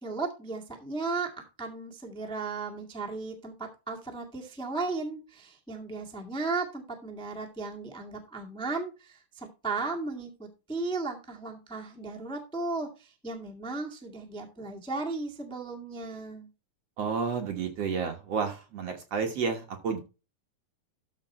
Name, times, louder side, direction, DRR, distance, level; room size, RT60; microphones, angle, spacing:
voice 1, 0.0-16.5, right 3 dB, 5° left, 0 dB, 0.5 m, -35 dB
voice 2, 17.0-20.0, right 5 dB, 55° right, 3 dB, 1.9 m, -31 dB
13.0 x 5.2 x 4.3 m, 0.30 s
omnidirectional pair, 4.3 m